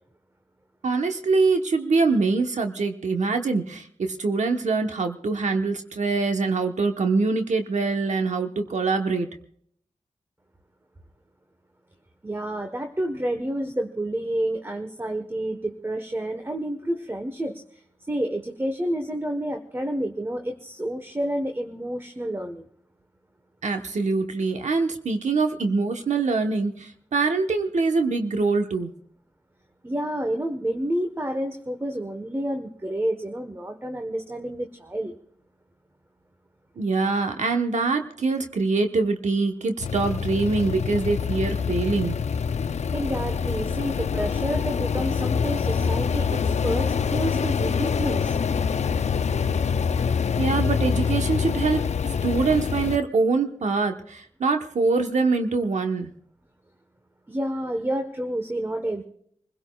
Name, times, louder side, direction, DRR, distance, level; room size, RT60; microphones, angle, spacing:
voice 1, 0.8-9.3 23.6-28.9 36.8-42.2 50.4-51.8 52.2-56.1, right 4 dB, 75° right, 5 dB, 1.1 m, -24 dB
voice 2, 12.2-17.8 18.1-22.7 29.8-35.2 42.9-48.4 48.7-48.8 57.3-59.0, right 1 dB, 20° right, 6 dB, 1.1 m, -29 dB
sound 1, 39.8-53.0, left 6 dB, 70° left, 0.5 m, -25 dB
26.5 x 16.5 x 2.3 m, 0.66 s
wide cardioid pair, 65°, 12 cm